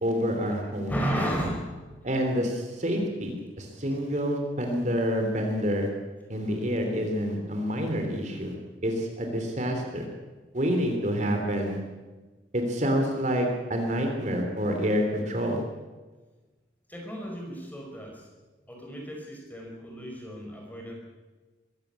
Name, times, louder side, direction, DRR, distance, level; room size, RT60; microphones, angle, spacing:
voice 1, 0.0-0.9 2.0-5.9 6.3-8.6 8.8-10.0 10.5-11.8 12.5-15.6, equal, 40° right, 3 dB, 3.2 m, -27 dB
voice 2, 0.9-1.8 4.6-4.8 16.9-18.3 18.7-20.9, equal, 10° left, 0 dB, 5.0 m, -33 dB
22.5 x 15.5 x 8.4 m, 1.3 s
head